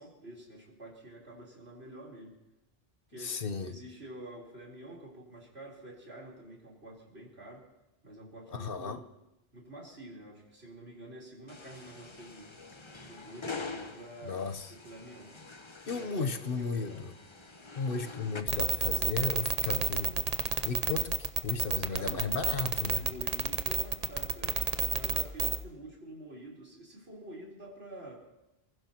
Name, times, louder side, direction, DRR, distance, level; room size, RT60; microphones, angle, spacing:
voice 1, 0.0-2.4 3.1-7.6 8.0-9.1 9.5-12.5 13.0-14.4 14.8-15.4 15.8-17.0 21.9-22.4 22.9-24.6 24.9-28.2, right 1 dB, 80° right, 4.2 m, -48 dB
voice 2, 3.2-3.7 8.5-9.0 14.2-14.7 15.9-17.2 17.8-20.3 20.6-23.1, left 4 dB, 60° left, 1.1 m, -35 dB
sound 1, 11.5-18.4, left 4 dB, 30° left, 1.0 m, -45 dB
sound 2, 18.5-25.6, right 5 dB, 40° right, 0.8 m, -29 dB
29.0 x 15.5 x 3.0 m
omnidirectional pair, 1.1 m